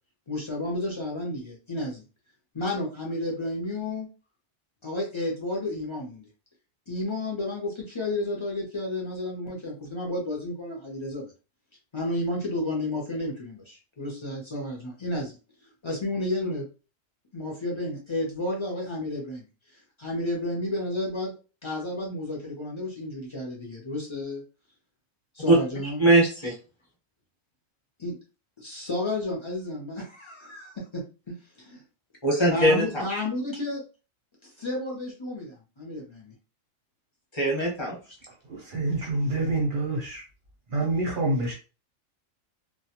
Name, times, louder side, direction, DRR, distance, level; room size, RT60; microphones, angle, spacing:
voice 1, 0.3-2.0 2.5-4.1 4.8-6.2 6.9-11.3 11.9-15.4 15.8-16.7 17.3-19.5 20.0-21.3 21.6-24.4 25.3-26.1 26.4-26.5 28.0-28.1 28.6-31.8 32.5-33.8 34.4-36.3, left 1 dB, 45° left, -2 dB, 0.4 m, -31 dB
voice 2, 26.0-26.5 32.2-33.0 37.3-38.0, right 1 dB, 25° left, -3 dB, 0.8 m, -21 dB
voice 3, 38.5-40.2 40.7-41.5, right 2 dB, 55° right, -1 dB, 0.6 m, -27 dB
2.2 x 2.1 x 2.8 m, 0.33 s
omnidirectional pair, 1.4 m